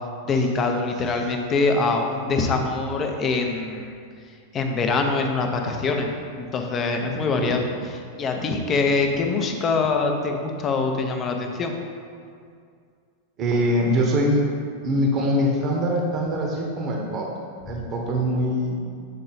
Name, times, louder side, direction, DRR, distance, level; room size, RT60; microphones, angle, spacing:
voice 1, 0.3-3.9 4.3-11.7, left 3 dB, 25° left, 4 dB, 0.6 m, -24 dB
voice 2, 13.4-14.4 14.8-17.3 17.6-18.8, equal, 30° right, 0 dB, 0.9 m, -23 dB
7.4 x 3.8 x 4.1 m, 2.2 s
figure-of-eight pair, 90°, 0 cm